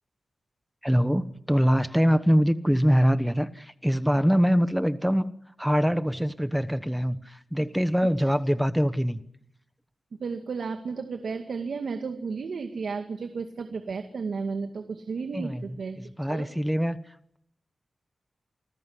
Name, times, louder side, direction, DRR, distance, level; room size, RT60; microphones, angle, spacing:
voice 1, 0.8-5.3 5.6-9.2 15.3-15.6 16.2-17.4, equal, ahead, 12 dB, 1.1 m, -24 dB
voice 2, 10.2-16.5, right 5 dB, 85° right, 6 dB, 2.1 m, -33 dB
28.0 x 20.0 x 9.6 m, 0.74 s
wide cardioid pair, 145°, 0 cm